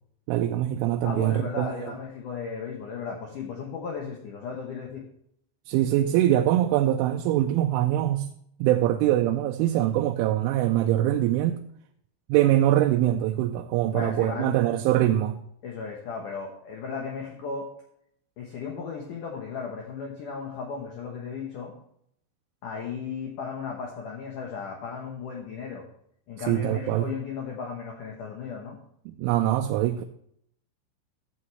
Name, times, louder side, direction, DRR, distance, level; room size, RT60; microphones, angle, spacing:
voice 1, 0.3-1.9 5.7-8.3 8.6-11.6 12.3-15.4 26.5-27.1 29.1-30.0, right 13 dB, 85° right, 3.0 m, -23 dB
voice 2, 1.0-5.0 13.9-14.6 15.6-17.7 18.4-21.7 22.6-25.9 26.3-28.8, left 5 dB, 80° left, 1.8 m, -35 dB
14.0 x 8.0 x 3.2 m
omnidirectional pair, 5.5 m